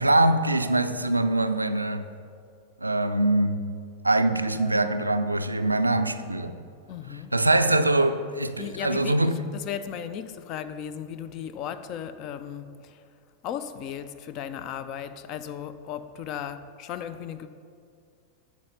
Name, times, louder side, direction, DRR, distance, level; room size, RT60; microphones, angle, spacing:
voice 1, 0.0-2.0 2.8-3.7 4.0-6.6 7.3-9.4, right 2 dB, 85° right, 0.3 m, -23 dB
voice 2, 6.9-7.3 8.6-13.0 13.4-17.5, left 9 dB, 40° left, 0.4 m, -36 dB
9.2 x 4.7 x 5.6 m
figure-of-eight pair, 90°, 0 cm